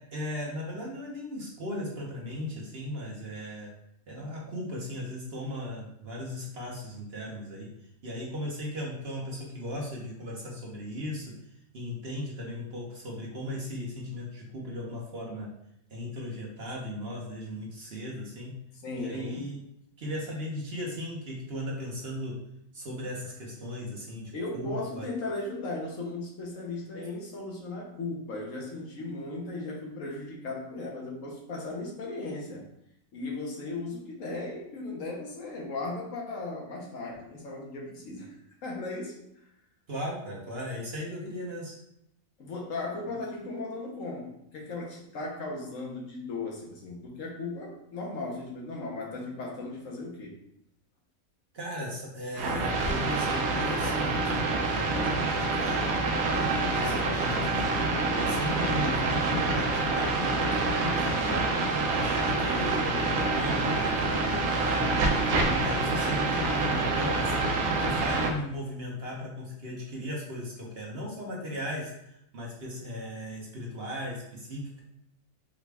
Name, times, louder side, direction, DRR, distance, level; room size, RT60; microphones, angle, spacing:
voice 1, 0.1-3.7 4.1-7.7 8.0-11.3 11.7-15.5 15.9-18.5 19.0-19.6 20.0-22.3 22.7-25.1 39.9-41.8 51.5-55.8 56.4-57.7 58.1-60.5 60.9-61.5 61.9-74.8, left 1 dB, 50° right, -3 dB, 1.0 m, -37 dB
voice 2, 18.8-19.5 24.3-32.6 33.1-38.3 38.6-39.2 42.4-50.3, left 2 dB, 70° left, -1 dB, 1.2 m, -36 dB
sound 1, 52.4-68.3, right 3 dB, 80° right, 1.1 m, -27 dB
4.9 x 2.2 x 3.3 m, 0.79 s
omnidirectional pair, 1.5 m